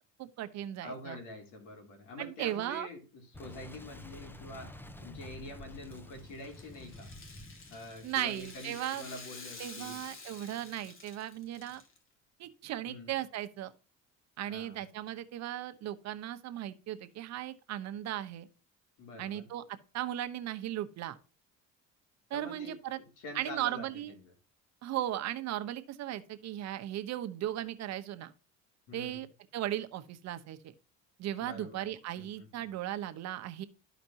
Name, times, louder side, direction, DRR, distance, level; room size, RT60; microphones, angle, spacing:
voice 1, 0.2-1.2 2.2-2.9 8.0-9.0 9.6-11.8 12.4-13.7 14.4-18.5 19.2-21.2 22.3-23.0 23.3-24.1 24.8-28.3 28.9-29.3 29.5-30.7 31.2-33.7, right 12 dB, 60° right, 1.0 m, -37 dB
voice 2, 0.8-7.1 7.7-10.0 12.8-13.1 14.5-14.8 19.0-19.5 22.3-24.3 28.9-29.2 31.4-31.9 32.2-32.7, left 2 dB, 80° left, 3.3 m, -46 dB
Boom, 3.3-8.9, left 1 dB, 5° left, 0.6 m, -49 dB
Rattle (instrument), 5.7-12.0, left 3 dB, 45° left, 2.3 m, -50 dB
13.0 x 5.1 x 2.8 m
cardioid pair, 125°, 30 cm